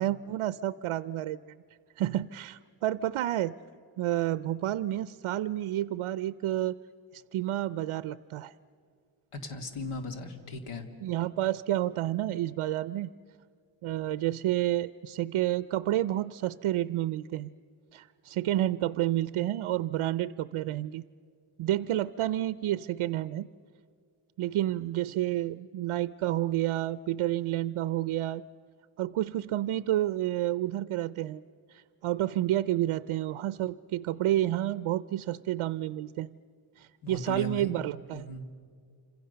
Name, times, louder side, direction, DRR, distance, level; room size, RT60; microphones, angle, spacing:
voice 1, 0.0-1.5 2.0-3.5 4.0-6.8 7.1-8.5 11.0-13.1 13.8-17.5 17.9-21.0 21.6-23.5 24.4-28.4 29.0-31.4 31.7-36.4 36.8-38.3, right 13 dB, 80° right, 16 dB, 0.6 m, -30 dB
voice 2, 9.3-10.9 37.0-37.7 38.1-38.4, left 2 dB, 85° left, 6 dB, 2.4 m, -37 dB
28.0 x 26.5 x 6.8 m, 2.2 s
wide cardioid pair, 150°, 49 cm